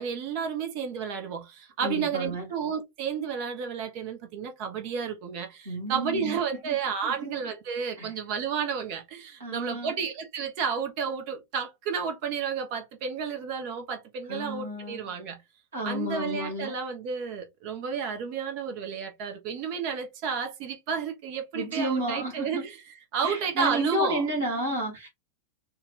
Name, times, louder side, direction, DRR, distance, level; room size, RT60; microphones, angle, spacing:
voice 1, 0.0-15.4 15.8-22.8 23.1-24.2, right 6 dB, 45° right, 1.0 m, -31 dB
voice 2, 1.8-2.5 5.6-6.4 7.0-7.3 8.0-8.1 9.4-9.9 14.3-15.1 15.7-16.7 21.5-22.7 23.2-25.1, equal, 70° right, 2.7 m, -31 dB
4.4 x 2.5 x 3.5 m
figure-of-eight pair, 90°, 0 cm